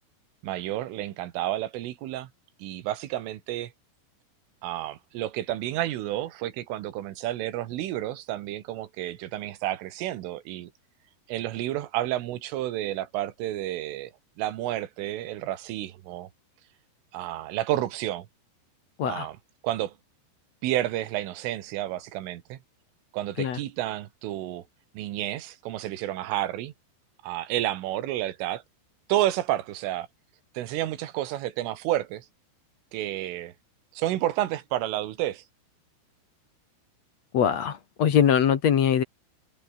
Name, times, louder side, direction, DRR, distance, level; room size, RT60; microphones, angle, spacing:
voice 1, 0.4-2.3 2.6-3.7 4.6-10.7 11.3-14.1 14.4-16.3 17.1-18.3 19.0-19.4 19.6-19.9 20.6-22.6 23.1-24.6 24.9-26.7 27.2-28.6 29.1-30.1 30.6-32.3 32.9-33.5 33.9-35.4, right 14 dB, 85° right, 4.2 m, -30 dB
voice 2, 37.3-39.0, left 8 dB, 60° left, 1.8 m, -22 dB
omnidirectional pair, 5.6 m